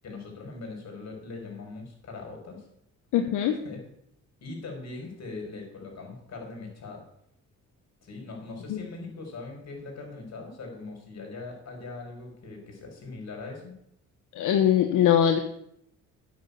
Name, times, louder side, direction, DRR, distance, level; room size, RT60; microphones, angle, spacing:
voice 1, 0.0-2.6 3.6-3.8 4.4-7.0 8.0-13.7, left 3 dB, 60° left, 1 dB, 5.1 m, -41 dB
voice 2, 3.1-3.6 8.7-8.8 14.3-15.4, left 10 dB, 85° left, 5 dB, 1.1 m, -22 dB
9.8 x 6.1 x 8.3 m, 0.74 s
cardioid pair, 90°, 30 cm